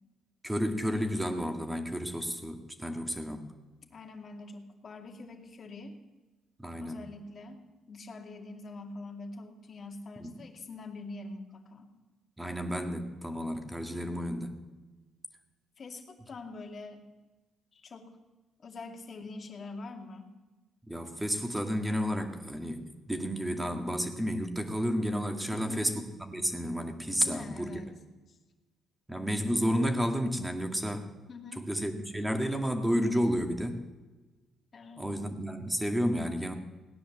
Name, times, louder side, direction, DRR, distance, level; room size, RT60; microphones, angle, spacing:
voice 1, 0.4-3.5 6.6-7.0 10.2-10.3 12.4-14.6 20.9-27.7 29.1-31.1 31.6-33.8 35.0-36.5, equal, 10° right, 5 dB, 2.1 m, -31 dB
voice 2, 3.9-6.0 6.7-11.9 15.8-17.0 17.7-18.1 18.6-20.3 25.5-25.9 27.1-27.9 28.3-28.4 31.3-31.7 34.7-35.2, left 3 dB, 45° left, 3 dB, 2.4 m, -44 dB
18.0 x 10.0 x 7.4 m, 1.2 s
cardioid pair, 90°, 0 cm